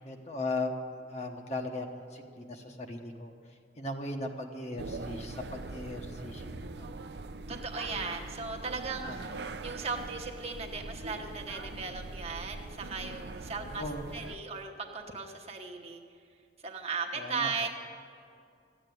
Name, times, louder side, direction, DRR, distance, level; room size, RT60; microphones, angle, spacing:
voice 1, 0.0-0.7 1.1-1.9 2.1-3.3 3.8-6.9 9.1-9.3 13.6-14.0 17.1-17.7, left 2 dB, 40° left, 3 dB, 1.1 m, -38 dB
sound 1, 4.8-14.4, right 3 dB, 70° right, 0.6 m, -42 dB
voice 2, 7.5-16.0 16.6-17.7, right 4 dB, 35° right, 2 dB, 1.1 m, -37 dB
13.5 x 8.8 x 9.3 m, 2.4 s
head